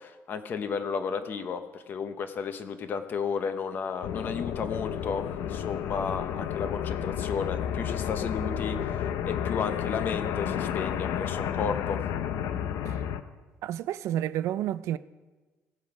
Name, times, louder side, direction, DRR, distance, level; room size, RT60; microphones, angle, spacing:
voice 1, 0.0-12.0, left 6 dB, 35° left, 0.7 m, -33 dB
sound 1, 4.0-13.2, left 9 dB, 85° left, 0.6 m, -31 dB
voice 2, 13.6-15.0, right 12 dB, 60° right, 0.3 m, -30 dB
17.0 x 7.4 x 4.9 m
cardioid pair, 180°, 6 cm